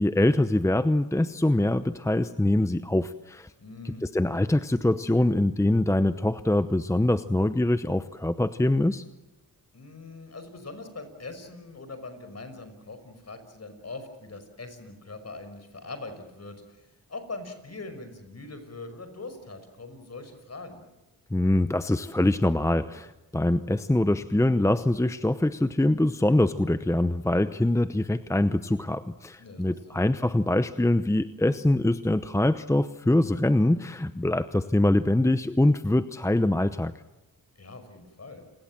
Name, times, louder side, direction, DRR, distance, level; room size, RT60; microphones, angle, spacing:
voice 1, 0.0-3.5 3.8-9.0 21.3-36.9, left 1 dB, 10° left, 12 dB, 0.8 m, -24 dB
voice 2, 3.6-4.0 9.7-20.8 29.4-30.0 37.6-38.5, left 3 dB, 45° left, 9 dB, 5.8 m, -42 dB
29.5 x 21.0 x 7.6 m, 1.0 s
cardioid pair, 70°, 35 cm